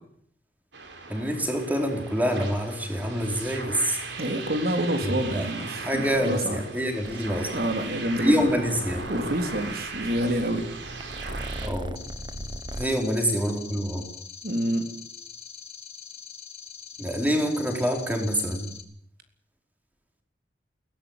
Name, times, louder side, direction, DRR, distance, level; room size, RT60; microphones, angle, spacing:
sound 1, 0.7-11.7, right 3 dB, 75° right, 4.2 m, -38 dB
voice 1, 1.1-4.0 5.0-5.5 5.8-7.5 8.2-9.0 11.6-12.0 12.7-14.0 17.0-18.7, equal, 10° right, 3 dB, 4.5 m, -26 dB
voice 2, 4.2-6.6 7.5-8.4 9.1-10.6 14.4-14.9, right 1 dB, 55° right, 6 dB, 3.6 m, -27 dB
Purr, 7.0-12.9, right 1 dB, 25° right, 1.1 m, -40 dB
sound 2, 12.0-18.8, left 7 dB, 35° left, 2.9 m, -43 dB
21.5 x 17.5 x 9.1 m, 0.66 s
head